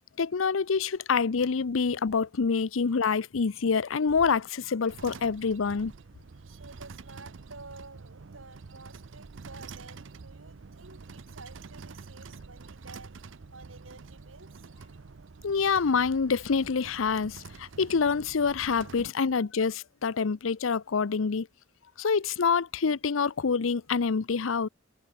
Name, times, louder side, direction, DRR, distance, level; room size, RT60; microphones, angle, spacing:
voice 1, 0.2-5.9 15.4-21.5 22.0-24.7, left 5 dB, 80° left, 0.6 m, -26 dB
sound 1, 4.9-19.1, right 4 dB, 70° right, 0.6 m, -47 dB
voice 2, 6.3-14.7 19.3-19.5, right 3 dB, 85° right, 6.9 m, -51 dB
head